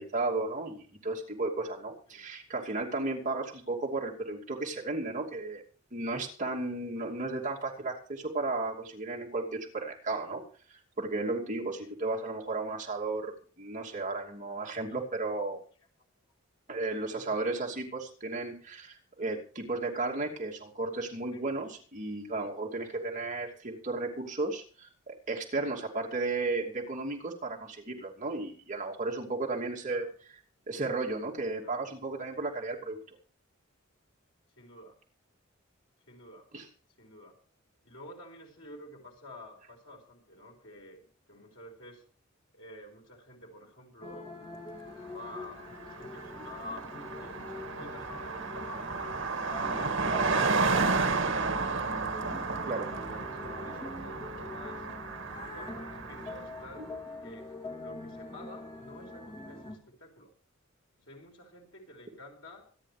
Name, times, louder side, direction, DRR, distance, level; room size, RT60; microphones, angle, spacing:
voice 1, 0.0-5.6 5.9-10.4 11.0-15.6 16.7-30.1 30.7-33.0 36.5-36.6 52.7-52.9 56.8-56.9, right 3 dB, 40° right, -1 dB, 2.6 m, -34 dB
voice 2, 17.1-17.4 21.3-21.4 26.2-26.3 29.9-30.1 31.6-31.8 34.6-35.0 36.1-36.5 37.0-37.3 37.8-42.0 42.5-46.9 47.1-49.2 49.5-52.1 52.4-54.9 55.4-56.9 57.2-57.5 57.8-60.3 61.0-62.6, left 1 dB, 70° left, 1 dB, 5.1 m, -50 dB
sound 1, 44.0-59.8, left 2 dB, 25° left, 2.5 m, -44 dB
Car passing by, 45.4-45.5 45.7-56.7, right 4 dB, 65° right, 2.1 m, -32 dB
25.5 x 10.0 x 3.3 m, 0.42 s
head